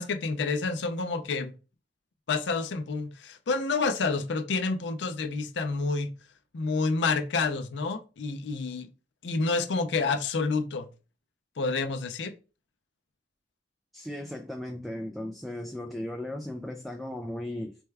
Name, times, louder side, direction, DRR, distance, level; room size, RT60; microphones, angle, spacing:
voice 1, 0.0-1.5 2.3-6.1 6.5-8.9 9.2-10.9 11.6-12.3, left 4 dB, 75° left, 0.5 m, -29 dB
voice 2, 13.9-17.8, left 1 dB, ahead, 0.3 m, -36 dB
4.3 x 2.2 x 3.3 m
head